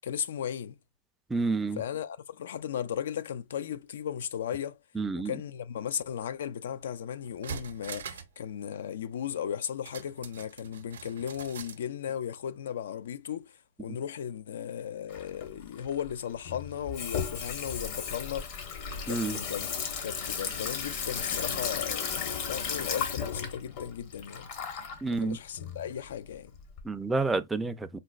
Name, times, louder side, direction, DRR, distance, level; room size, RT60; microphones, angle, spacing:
voice 1, 0.0-0.8 1.8-4.8 5.2-18.5 19.1-19.7 20.0-24.5 25.1-26.5, left 9 dB, 75° left, 0.3 m, -36 dB
voice 2, 1.3-1.8 5.0-5.3 19.1-19.4 25.0-25.4 26.8-27.9, right 3 dB, 10° right, 0.4 m, -29 dB
sound 1, 6.8-6.9 7.2-8.4 8.7-8.8 9.9-11.8 12.2-12.3, right 7 dB, 85° right, 0.6 m, -42 dB
Water tap faucet / Sink (filling or washing), 15.1-26.8, left 6 dB, 50° left, 0.9 m, -35 dB
4.0 x 2.1 x 2.4 m
hypercardioid pair, 125°, 0 cm